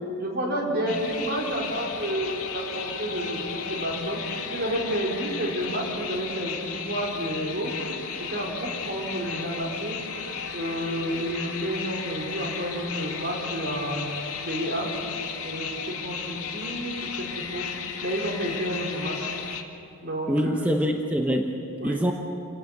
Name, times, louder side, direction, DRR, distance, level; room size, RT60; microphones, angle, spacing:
voice 1, 0.2-4.2 4.5-7.7 8.3-10.0 10.5-14.1 14.5-14.9 15.4-17.6 18.0-19.3 20.0-20.7 21.8-22.1, right 1 dB, 50° right, -2 dB, 4.8 m, -30 dB
sound 1, 0.9-19.6, left 6 dB, 80° left, 2.1 m, -34 dB
voice 2, 20.3-22.1, equal, 5° right, 2 dB, 1.0 m, -25 dB
28.0 x 18.5 x 6.8 m, 2.8 s
head